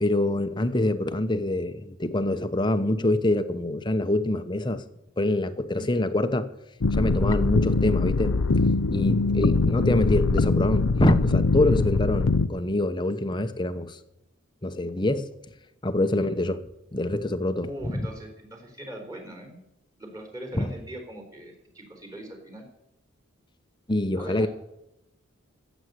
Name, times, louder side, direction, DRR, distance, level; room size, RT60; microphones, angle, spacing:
voice 1, 0.0-4.8 5.2-6.5 6.9-8.4 8.9-14.0 14.6-15.2 15.8-16.6 16.9-18.1 20.5-20.7 23.9-24.5, left 1 dB, 20° left, 9 dB, 0.9 m, -25 dB
sound 1, 6.8-12.5, left 3 dB, 85° left, 0.7 m, -23 dB
voice 2, 9.5-9.9 16.2-16.3 17.6-19.6 20.0-22.6 24.2-24.5, right 1 dB, 15° right, 3 dB, 3.7 m, -41 dB
15.5 x 8.1 x 8.1 m, 0.86 s
head